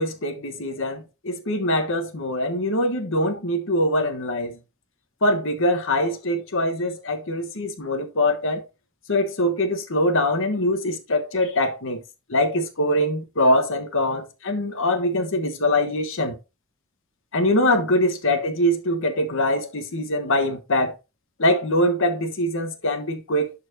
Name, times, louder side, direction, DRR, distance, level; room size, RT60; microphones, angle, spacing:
voice 1, 0.0-4.6 5.2-8.6 9.1-12.0 12.3-16.4 17.3-20.9 21.4-23.5, left 1 dB, 65° left, 1.3 m, -23 dB
11.5 x 4.4 x 2.8 m
head